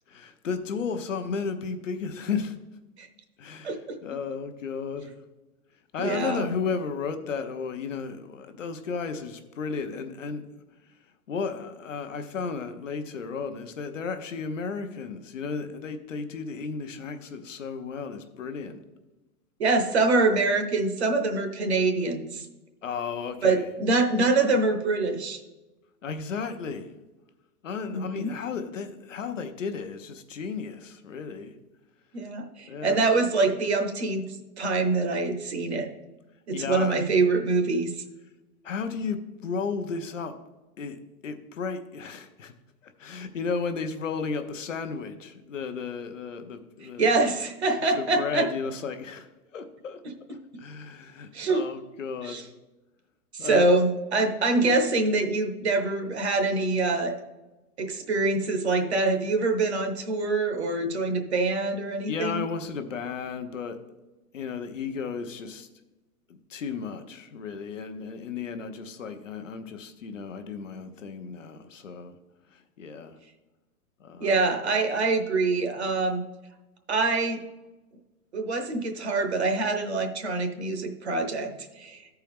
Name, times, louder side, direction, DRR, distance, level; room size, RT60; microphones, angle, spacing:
voice 1, 0.1-2.6 3.4-5.1 5.9-10.4 10.9-11.0 11.3-18.8 22.8-23.7 26.0-26.9 27.6-31.6 32.7-33.0 36.5-37.0 38.6-40.3 40.8-41.0 41.2-42.5 42.8-47.1 47.8-49.3 49.5-50.0 50.3-52.5 53.4-53.7 62.1-63.8 64.3-65.7 66.3-72.2 72.5-73.2 74.0-74.4, left 5 dB, 55° left, 7 dB, 0.7 m, -34 dB
voice 2, 3.6-4.0 6.0-6.5 19.6-22.5 23.4-25.4 27.9-28.3 32.1-34.2 34.6-35.9 36.5-38.0 47.0-48.5 51.3-51.6 52.2-52.4 53.3-57.2 57.8-62.4 74.2-76.2 76.9-77.4 78.3-81.5 81.8-82.0, right 3 dB, 45° right, 5 dB, 0.9 m, -25 dB
13.0 x 4.5 x 3.5 m, 1.1 s
hypercardioid pair, 180°, 46 cm